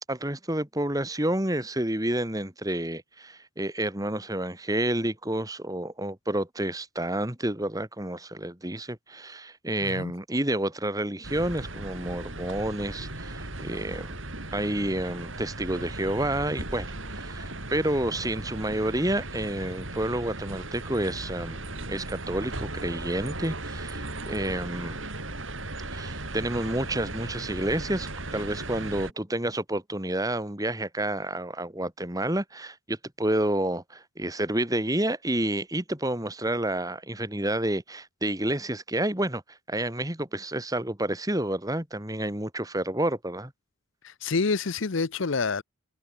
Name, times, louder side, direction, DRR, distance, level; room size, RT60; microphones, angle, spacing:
voice 1, 0.0-14.2 14.5-21.6 21.9-25.0 25.9-43.5, right 1 dB, 15° right, 2.2 m, -29 dB
sound 1, 11.2-29.1, right 2 dB, 70° right, 6.2 m, -37 dB
voice 2, 44.0-45.6, left 4 dB, 65° left, 0.7 m, -27 dB
head